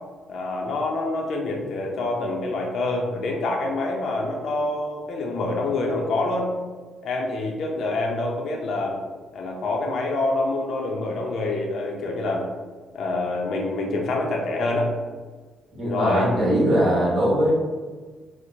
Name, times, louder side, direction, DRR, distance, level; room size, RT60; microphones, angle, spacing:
voice 1, 0.3-6.5 7.0-9.0 9.3-12.5 12.9-14.9 15.8-16.3, left 2 dB, 65° left, -1 dB, 0.5 m, -26 dB
voice 2, 15.7-17.5, equal, 45° right, -5 dB, 1.3 m, -21 dB
4.3 x 2.1 x 2.6 m, 1.4 s
cardioid pair, 90°, 0 cm